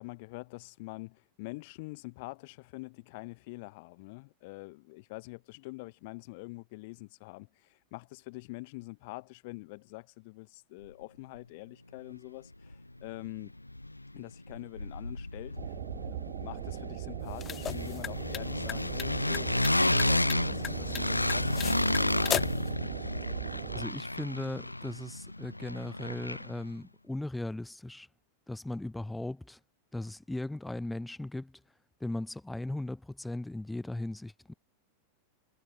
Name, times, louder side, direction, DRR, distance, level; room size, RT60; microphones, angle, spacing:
voice 1, 0.0-13.5 14.1-22.7, left 25 dB, 50° left, 6.4 m, -45 dB
sound 1, 12.7-12.8 13.1-14.2 14.5-26.7, left 1 dB, 85° left, 1.5 m, -32 dB
sound 2, 15.6-23.9, right 22 dB, 50° right, 4.1 m, -40 dB
sound 3, 17.2-22.7, left 9 dB, 25° left, 2.8 m, -38 dB
voice 2, 23.7-28.1 28.5-29.6 29.9-31.6 32.0-34.5, left 2 dB, 5° left, 1.5 m, -37 dB
figure-of-eight pair, 90°, 0 cm